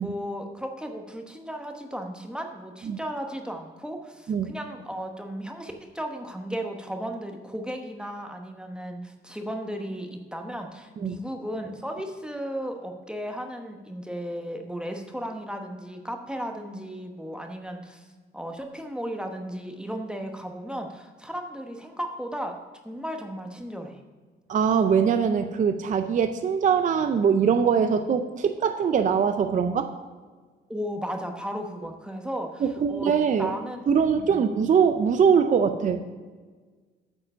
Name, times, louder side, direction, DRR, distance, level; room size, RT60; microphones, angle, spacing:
voice 1, 0.0-18.0 18.3-22.5 22.8-24.0 30.7-33.1 33.4-34.4, equal, 5° right, 3 dB, 0.9 m, -35 dB
voice 2, 24.5-29.9 32.6-33.5 33.9-36.0, right 7 dB, 40° right, 8 dB, 0.5 m, -22 dB
8.6 x 4.9 x 6.5 m, 1.4 s
cardioid pair, 90°, 20 cm